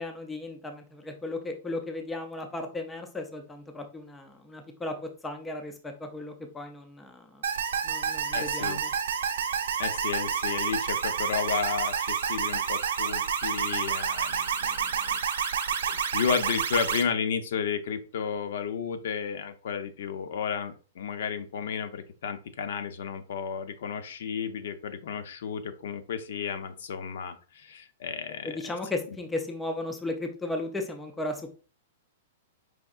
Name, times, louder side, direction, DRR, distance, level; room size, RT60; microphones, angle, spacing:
voice 1, 0.0-7.4 7.8-8.9 28.4-31.5, left 2 dB, 5° left, 4 dB, 0.4 m, -35 dB
sound 1, 7.4-17.0, right 7 dB, 80° right, 0.7 m, -29 dB
voice 2, 8.3-8.8 9.8-15.2 15.4-15.5 15.9-28.6, left 6 dB, 60° left, 10 dB, 0.5 m, -32 dB
4.9 x 3.4 x 2.4 m, 0.36 s
supercardioid pair, 175°, 0 cm